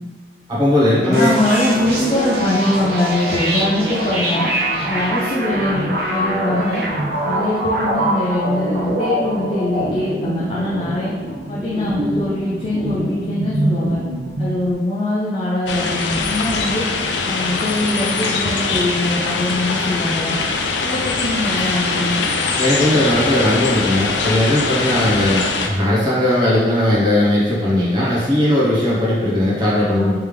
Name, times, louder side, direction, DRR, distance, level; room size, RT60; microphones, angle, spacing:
voice 1, 0.5-1.3 22.6-30.2, left 1 dB, 25° right, -9 dB, 1.1 m, -17 dB
voice 2, 1.0-4.5 4.9-6.8 7.2-11.1 11.5-14.0 14.4-16.8 17.3-20.3 20.8-22.2 30.0-30.2, left 1 dB, 30° left, -6 dB, 0.5 m, -22 dB
sound 1, 1.1-14.7, right 1 dB, 60° right, 0.8 m, -24 dB
sound 2, 15.7-25.7, left 4 dB, 90° left, 0.4 m, -22 dB
3.4 x 3.3 x 3.2 m, 1.5 s
head